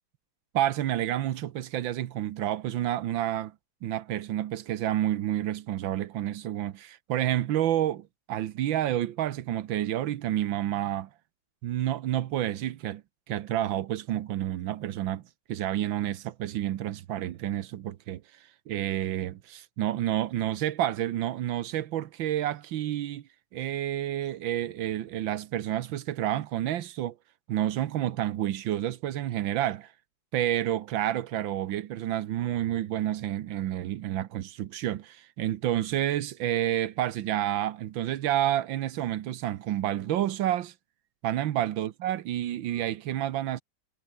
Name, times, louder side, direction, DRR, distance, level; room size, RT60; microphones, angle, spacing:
voice 1, 0.5-3.5 3.8-11.1 11.6-13.0 13.3-15.2 15.5-18.2 18.7-23.2 23.5-27.2 27.5-29.9 30.3-40.7 41.2-43.6, right 12 dB, 85° right, 1.7 m, -29 dB
omnidirectional pair, 2.0 m